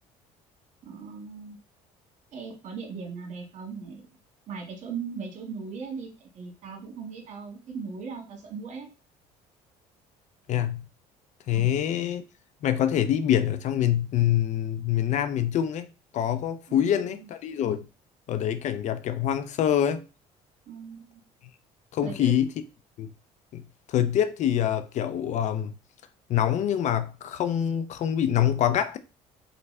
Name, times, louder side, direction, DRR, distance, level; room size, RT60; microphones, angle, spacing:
voice 1, 0.8-1.6 2.3-4.1 4.5-6.1 6.3-8.9 11.5-11.8 16.7-17.3 20.7-21.2 22.0-22.3, right 5 dB, 55° right, 1.6 m, -38 dB
voice 2, 10.5-10.8 11.5-12.2 12.6-15.9 16.1-17.9 18.3-20.0 21.9-22.5 23.0-23.1 23.5-23.6 23.9-25.7 26.3-29.0, left 10 dB, 55° left, 0.5 m, -25 dB
3.9 x 3.4 x 3.2 m
cardioid pair, 95°, 14 cm